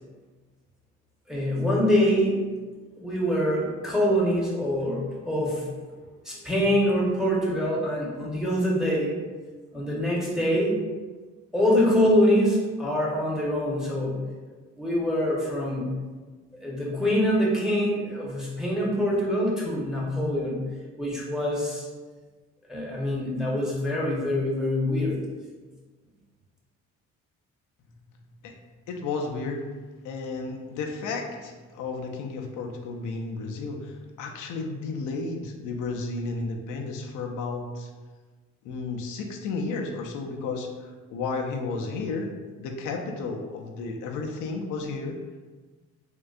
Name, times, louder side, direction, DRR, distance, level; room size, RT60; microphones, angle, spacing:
voice 1, 1.3-2.4 3.0-5.7 6.2-9.1 9.7-10.8 11.5-14.2 14.8-15.9 16.6-20.6 21.0-21.9 22.7-25.2, equal, ahead, -5 dB, 0.8 m, -24 dB
voice 2, 28.9-29.7 30.0-37.9 38.6-42.3 42.6-45.2, left 3 dB, 85° left, 2 dB, 0.5 m, -33 dB
3.6 x 2.2 x 2.4 m, 1.3 s
cardioid pair, 90°, 30 cm